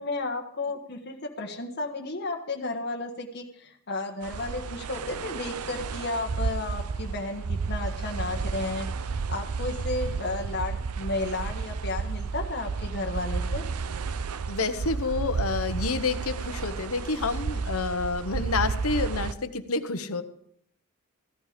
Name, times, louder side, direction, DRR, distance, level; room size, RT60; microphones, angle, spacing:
voice 1, 0.0-13.7, left 2 dB, 50° left, 2 dB, 1.4 m, -33 dB
sound 1, 4.2-19.3, right 5 dB, 85° right, 0.6 m, -32 dB
voice 2, 14.5-20.2, left 3 dB, 70° left, 10 dB, 1.1 m, -29 dB
15.5 x 11.5 x 5.1 m, 0.69 s
head